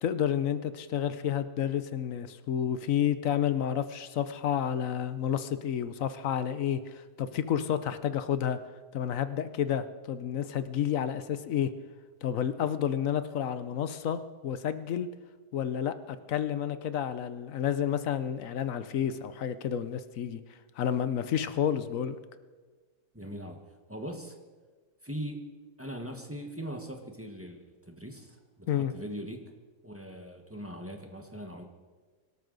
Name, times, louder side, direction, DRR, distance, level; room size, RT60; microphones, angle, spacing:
voice 1, 0.0-8.6 8.9-11.7 12.2-15.1 15.5-20.4 20.8-22.2 28.7-28.9, left 9 dB, 65° left, 12 dB, 1.1 m, -30 dB
voice 2, 23.1-23.6 23.9-24.4 25.0-25.4 25.8-29.5 29.8-31.6, equal, 10° right, 3 dB, 1.2 m, -40 dB
24.0 x 12.5 x 4.0 m, 1.4 s
omnidirectional pair, 1.7 m